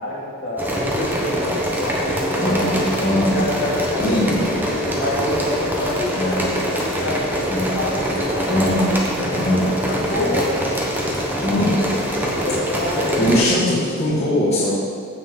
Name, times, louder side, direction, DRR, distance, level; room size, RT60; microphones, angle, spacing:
voice 1, 0.0-2.6 3.3-4.2 4.6-8.6 9.3-9.6 9.9-10.6 12.3-13.3, left 1 dB, 45° left, -6 dB, 2.5 m, -27 dB
sound 1, 0.6-13.4, equal, 10° right, 1.1 m, -24 dB
voice 2, 2.4-3.4 4.0-4.4 6.1-6.5 7.5-7.7 8.5-8.9 9.3-9.7 11.4-11.8 13.2-14.7, left 1 dB, 30° left, -10 dB, 2.1 m, -20 dB
15.5 x 5.9 x 3.9 m, 2.1 s
head